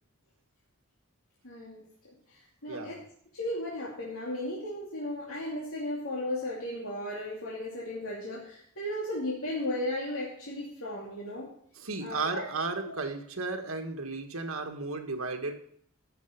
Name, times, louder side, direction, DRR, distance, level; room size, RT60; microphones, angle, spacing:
voice 1, 1.4-1.8 2.3-3.0 3.3-11.5 12.0-12.5 12.9-13.0, left 1 dB, 90° left, -5 dB, 2.8 m, -35 dB
voice 2, 2.7-3.0 11.7-15.5, right 3 dB, 80° right, 3 dB, 1.8 m, -34 dB
15.0 x 6.7 x 5.9 m, 0.64 s
head